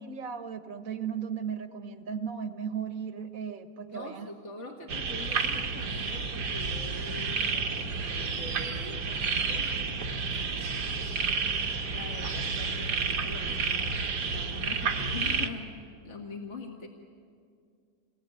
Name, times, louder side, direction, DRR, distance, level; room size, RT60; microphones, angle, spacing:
voice 1, 0.0-4.3, right 7 dB, 60° right, 8 dB, 1.6 m, -36 dB
voice 2, 3.8-10.7 11.0-11.3 11.9-15.7 16.0-16.9, left 3 dB, 45° left, 1 dB, 2.1 m, -44 dB
sound 1, 4.9-15.5, right 4 dB, 80° right, 2.0 m, -30 dB
28.0 x 21.0 x 9.6 m, 2.2 s
omnidirectional pair, 1.7 m